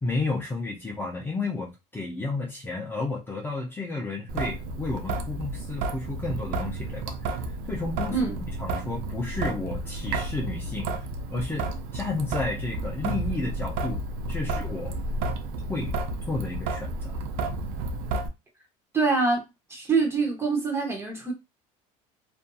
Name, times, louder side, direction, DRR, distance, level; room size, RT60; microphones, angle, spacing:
voice 1, 0.0-7.4 7.7-8.3 8.6-14.0 14.3-14.9 15.7-16.0 16.3-17.1, left 3 dB, 15° left, 0.5 m, -32 dB
Traffic noise roadway noise / Drip / Trickle dribble, 4.3-18.3, right 2 dB, 70° right, 0.5 m, -32 dB
voice 2, 18.9-19.4 19.7-21.3, right 4 dB, 15° right, 0.8 m, -25 dB
2.6 x 2.5 x 2.3 m
cardioid pair, 135°, 16 cm